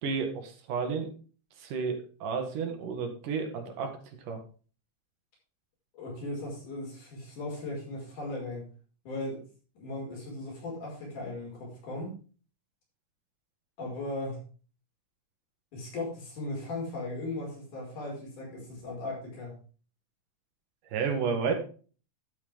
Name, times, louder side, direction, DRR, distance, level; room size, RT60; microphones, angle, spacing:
voice 1, 0.0-1.1 1.6-4.0 4.2-4.4 20.9-21.5, right 5 dB, 85° right, 5 dB, 3.5 m, -31 dB
voice 2, 5.9-8.7 9.0-9.4 9.8-12.1 13.8-14.4 15.7-19.5, left 2 dB, 75° left, -2 dB, 6.6 m, -37 dB
11.5 x 9.1 x 3.6 m, 0.38 s
omnidirectional pair, 3.6 m